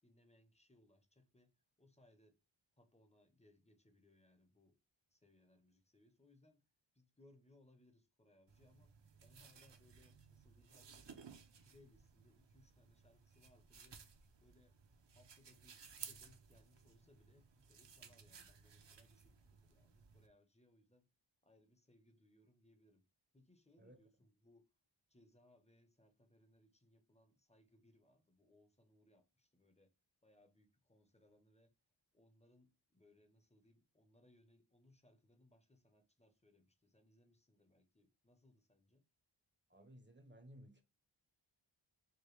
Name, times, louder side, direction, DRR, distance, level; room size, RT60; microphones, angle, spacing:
voice 1, 0.0-2.4 2.8-4.8 5.1-6.7 6.9-8.9 9.2-11.2 11.6-14.1 14.4-14.8 15.1-21.1 21.4-23.0 23.3-24.7 25.1-29.9 30.2-31.7 32.1-39.1, left 1 dB, 15° left, 0.7 m, -70 dB
sound 1, 8.5-20.3, right 6 dB, 60° right, 0.6 m, -59 dB
voice 2, 39.7-40.8, equal, 25° right, 0.7 m, -59 dB
4.8 x 2.2 x 3.1 m
wide cardioid pair, 55°, 49 cm